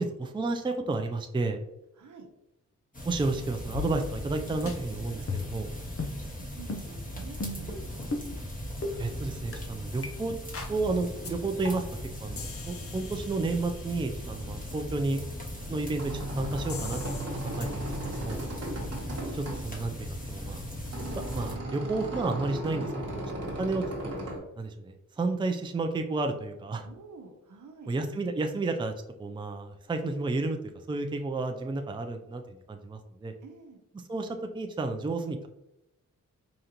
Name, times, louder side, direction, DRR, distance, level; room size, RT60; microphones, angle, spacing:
voice 1, 0.0-1.6 3.0-5.7 9.0-10.3 10.7-11.8 12.2-15.2 15.7-18.4 19.3-20.6 21.1-24.2 24.6-26.9 27.9-28.9 29.2-30.6 30.9-33.3 34.1-35.5, right 3 dB, 15° right, 5 dB, 0.4 m, -32 dB
voice 2, 2.0-2.3 6.0-6.1 6.4-8.1 18.5-18.8 26.8-27.9 33.4-33.8, right 4 dB, 70° right, 3 dB, 0.9 m, -49 dB
sound 1, 2.9-21.5, equal, 25° left, 1.3 m, -39 dB
sound 2, 3.7-4.4 4.7-4.8 5.3-5.6 6.0-6.2 6.7-6.9 7.4-7.7 8.1-8.3 8.8-9.0 9.5-9.6 10.0-10.1 10.5-10.8 11.2-11.3 11.6-12.0 12.4-14.2 16.7-17.3 17.6-17.7, left 3 dB, 45° left, 0.8 m, -37 dB
sound 3, 15.7-24.4, right 1 dB, 50° right, 1.2 m, -36 dB
5.0 x 2.5 x 2.9 m, 0.88 s
cardioid pair, 65°, 31 cm